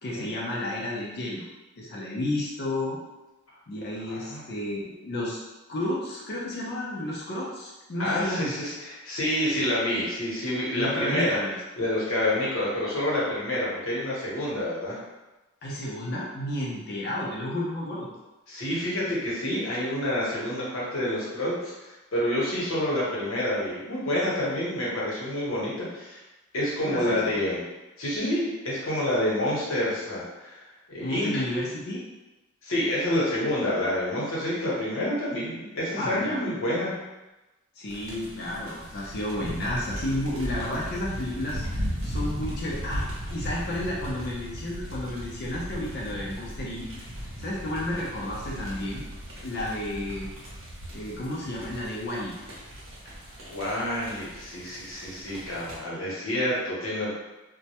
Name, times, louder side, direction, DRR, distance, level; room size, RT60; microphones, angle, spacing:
voice 1, 0.0-1.4 1.8-3.0 3.7-5.4 5.7-8.6 10.7-11.6 15.6-18.1 26.8-27.4 31.0-32.0 36.0-36.4 37.8-46.9 47.4-49.0 49.4-50.3 50.9-52.3, left 1 dB, 50° left, -5 dB, 0.4 m, -32 dB
voice 2, 4.1-4.4 8.0-11.4 11.8-15.0 18.5-26.2 26.5-27.6 28.0-30.6 30.9-31.4 32.6-36.9 53.5-57.1, left 1 dB, 70° left, -7 dB, 0.9 m, -28 dB
sound 1, 37.9-55.8, equal, 70° right, 0.7 m, -37 dB
2.1 x 2.1 x 2.8 m, 1.1 s
head